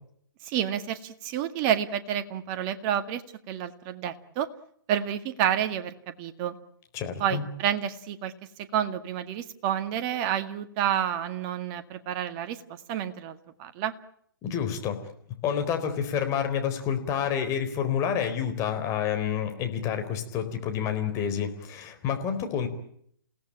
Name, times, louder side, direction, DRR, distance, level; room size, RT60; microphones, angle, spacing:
voice 1, 0.4-4.5 4.9-6.6 7.2-8.3 8.7-12.6 12.9-13.9, right 10 dB, 30° right, 9 dB, 1.9 m, -29 dB
voice 2, 6.9-7.4 14.4-15.0 15.4-22.7, left 8 dB, 25° left, 6 dB, 4.1 m, -29 dB
29.0 x 17.5 x 8.8 m, 0.68 s
figure-of-eight pair, 130°, 12 cm